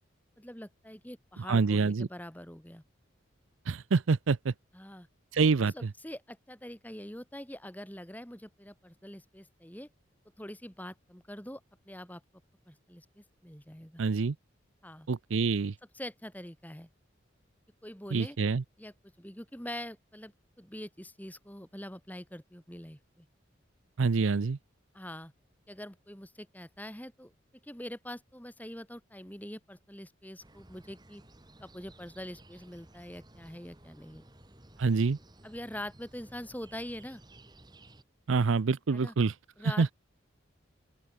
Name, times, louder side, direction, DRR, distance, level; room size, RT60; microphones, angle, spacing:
voice 1, 0.4-2.8 4.7-5.1 5.7-9.9 10.4-11.6 11.9-12.2 12.7-14.0 14.8-15.1 15.9-16.9 17.8-18.4 18.8-23.3 24.9-25.3 25.7-27.3 27.6-31.2 31.6-34.3 35.4-37.2 38.9-39.1 39.6-39.9, left 1 dB, 10° left, 2.7 m, -44 dB
voice 2, 1.4-2.1 3.7-4.5 5.3-5.9 14.0-14.4 15.1-15.7 18.1-18.6 24.0-24.6 34.8-35.2 38.3-39.3 39.6-39.9, right 4 dB, 80° right, 0.6 m, -26 dB
sound 1, 30.4-38.0, right 1 dB, 20° right, 2.1 m, -56 dB
open air
head